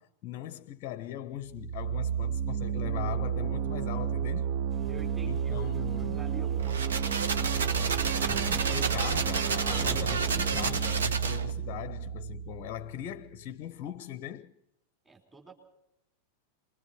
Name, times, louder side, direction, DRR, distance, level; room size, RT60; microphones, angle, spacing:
voice 1, 0.0-4.5 5.2-6.2 8.5-14.5, left 12 dB, 40° left, 0.6 m, -40 dB
sound 1, 1.4-13.2, right 8 dB, 45° right, 0.7 m, -31 dB
sound 2, 4.7-10.8, left 3 dB, 5° left, 1.0 m, -44 dB
voice 2, 4.9-8.3 15.0-15.5, right 3 dB, 15° right, 4.2 m, -48 dB
sound 3, 6.6-11.6, right 5 dB, 65° right, 1.1 m, -31 dB
27.0 x 22.0 x 4.4 m
figure-of-eight pair, 90°, 0 cm